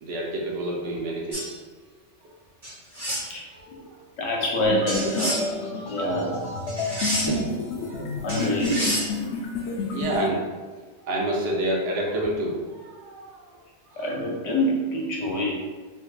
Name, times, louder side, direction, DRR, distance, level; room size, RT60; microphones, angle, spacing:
voice 1, 0.0-1.5 3.5-3.9 6.1-6.2 6.7-7.2 7.8-8.1 9.6-10.5 11.1-13.6 13.9-14.1, right 1 dB, 70° right, -3 dB, 1.0 m, -29 dB
sound 1, 1.3-1.5 2.6-3.3 4.9-5.5 6.7-7.4 8.3-9.1, right 1 dB, 20° right, 1.2 m, -28 dB
voice 2, 4.2-5.4 5.8-6.4 8.2-9.0 14.0-15.5, left 1 dB, 90° left, -2 dB, 1.1 m, -26 dB
sound 2, 4.7-10.3, left 3 dB, 70° left, 0.8 m, -30 dB
3.3 x 3.0 x 2.4 m, 1.4 s
omnidirectional pair, 1.2 m